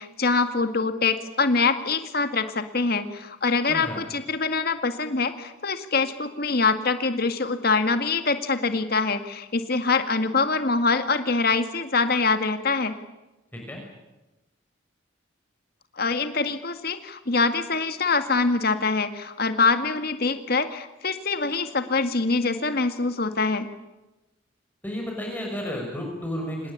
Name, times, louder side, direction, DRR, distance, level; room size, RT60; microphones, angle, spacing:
voice 1, 0.0-13.0 16.0-23.7, left 4 dB, 55° left, 8 dB, 2.0 m, -24 dB
voice 2, 3.7-4.0 13.5-13.8 24.8-26.7, equal, 10° left, -1 dB, 5.9 m, -32 dB
26.0 x 20.0 x 9.9 m, 1.0 s
head